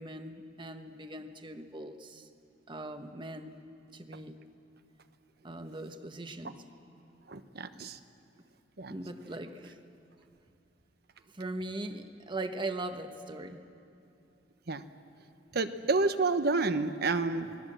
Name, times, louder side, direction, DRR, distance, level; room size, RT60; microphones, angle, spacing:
voice 1, 0.0-2.3 2.7-3.6 3.9-4.4 5.4-6.6 7.7-7.8 8.9-9.8 11.3-13.6, right 2 dB, 25° right, 7 dB, 1.2 m, -40 dB
voice 2, 7.3-8.0 8.8-8.9 14.7-14.8 15.5-17.6, right 3 dB, 60° right, 10 dB, 1.1 m, -29 dB
28.0 x 20.5 x 7.8 m, 2.6 s
head